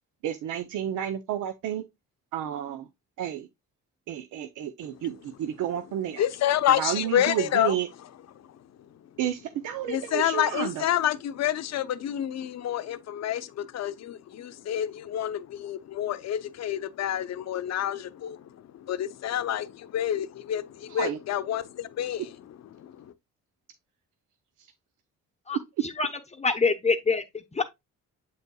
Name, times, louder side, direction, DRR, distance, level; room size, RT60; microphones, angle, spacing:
voice 1, 0.2-1.8 2.3-2.9 3.2-3.5 4.1-6.2 6.8-7.9 9.2-10.9 20.9-21.2 24.6-24.7, right 10 dB, 85° right, 0.6 m, -31 dB
voice 2, 6.2-7.7 9.9-22.3 22.7-23.1, left 11 dB, 60° left, 0.7 m, -28 dB
voice 3, 26.0-27.6, left 4 dB, 20° left, 0.8 m, -26 dB
7.9 x 5.4 x 2.2 m
cardioid pair, 90°, 30 cm